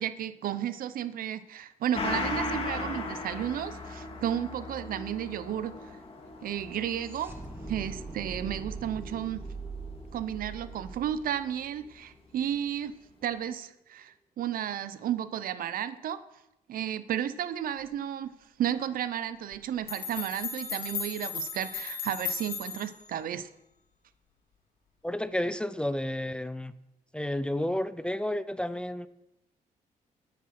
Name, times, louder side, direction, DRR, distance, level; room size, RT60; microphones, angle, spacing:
voice 1, 0.0-6.0 6.4-7.3 7.7-9.5 10.1-12.9 13.2-16.2 16.7-18.3 18.6-23.5, right 10 dB, 75° right, 14 dB, 0.8 m, -33 dB
Gong, 1.9-10.9 11.2-11.3, left 3 dB, 40° left, 2.3 m, -38 dB
sound 1, 4.8-12.4, right 4 dB, 15° right, 2.0 m, -44 dB
sound 2, 19.5-19.6 19.9-23.0, left 6 dB, 75° left, 3.0 m, -36 dB
voice 2, 25.0-26.7 27.1-29.1, left 1 dB, 5° left, 15 dB, 0.6 m, -31 dB
11.5 x 10.0 x 6.0 m, 0.88 s
cardioid pair, 110°, 15 cm